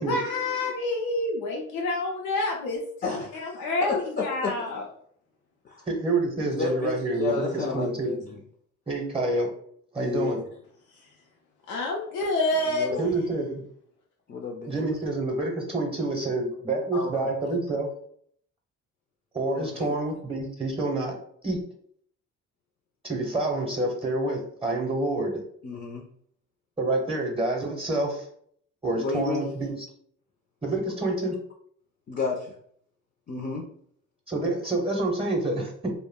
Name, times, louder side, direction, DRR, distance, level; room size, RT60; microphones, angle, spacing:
voice 1, 0.0-2.8 3.6-4.8 11.7-13.0, left 2 dB, 75° left, -2 dB, 0.6 m, -27 dB
voice 2, 3.0-4.5 5.6-5.8 6.4-8.4 10.0-10.4 12.6-13.1 14.3-14.9 16.9-17.3 19.5-19.9 25.6-26.0 29.0-29.5 32.1-32.5 33.3-33.6, left 4 dB, 35° left, -1 dB, 0.5 m, -31 dB
voice 3, 5.9-8.1 8.9-9.5 9.9-10.4 13.0-13.6 14.7-17.9 19.3-21.1 21.4-21.6 23.0-25.4 26.8-28.2 28.8-29.9 30.6-31.4 34.3-35.9, right 2 dB, 20° right, 2 dB, 0.7 m, -27 dB
2.2 x 2.1 x 3.5 m, 0.63 s
cardioid pair, 90°, 30 cm